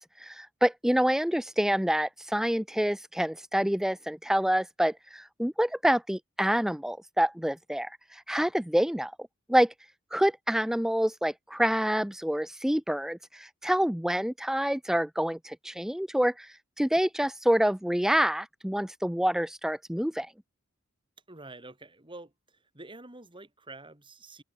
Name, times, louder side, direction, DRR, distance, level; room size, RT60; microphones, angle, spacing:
voice 1, 0.2-9.1 9.5-9.7 10.1-20.3, equal, ahead, 0.5 m, -27 dB
voice 2, 21.3-22.3 22.7-24.4, right 2 dB, 25° right, 4.0 m, -47 dB
head